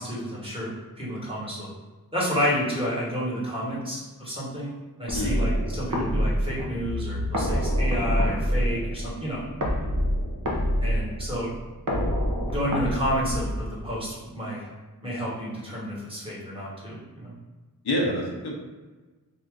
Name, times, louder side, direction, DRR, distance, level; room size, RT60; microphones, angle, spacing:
voice 1, 0.0-1.7 2.1-4.7 5.0-9.4 10.8-11.5 12.4-14.7 15.0-17.3, equal, 15° right, -8 dB, 1.5 m, -30 dB
voice 2, 5.1-5.5 17.8-18.5, equal, 85° left, -1 dB, 0.7 m, -27 dB
sound 1, 5.1-14.0, equal, 55° right, 0.8 m, -27 dB
2.8 x 2.4 x 3.7 m, 1.3 s
wide cardioid pair, 45°, 38 cm